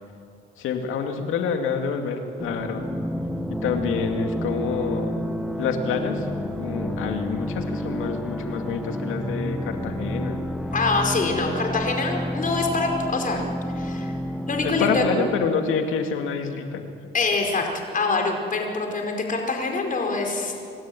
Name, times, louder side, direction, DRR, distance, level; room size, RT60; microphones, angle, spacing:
voice 1, 0.6-2.9 3.5-5.2 5.6-10.4 14.6-16.9, left 6 dB, 80° left, 5 dB, 2.4 m, -27 dB
sound 1, 2.4-15.5, equal, ahead, 1.3 m, -30 dB
voice 2, 10.7-13.4 13.7-14.1 14.5-15.0 17.1-17.7 17.9-20.5, left 3 dB, 40° left, 2 dB, 4.9 m, -25 dB
27.0 x 13.0 x 9.3 m, 2.5 s
cardioid pair, 80°, 20 cm